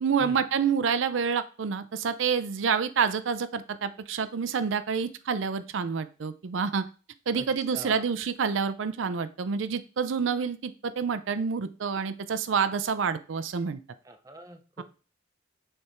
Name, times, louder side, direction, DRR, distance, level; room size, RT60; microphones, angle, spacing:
voice 1, 0.0-6.9 7.3-13.8 14.8-14.9, right 6 dB, 80° right, 12 dB, 0.5 m, -28 dB
voice 2, 7.7-8.1 14.0-14.8, right 1 dB, 20° right, 6 dB, 0.6 m, -44 dB
6.7 x 3.4 x 4.3 m, 0.36 s
head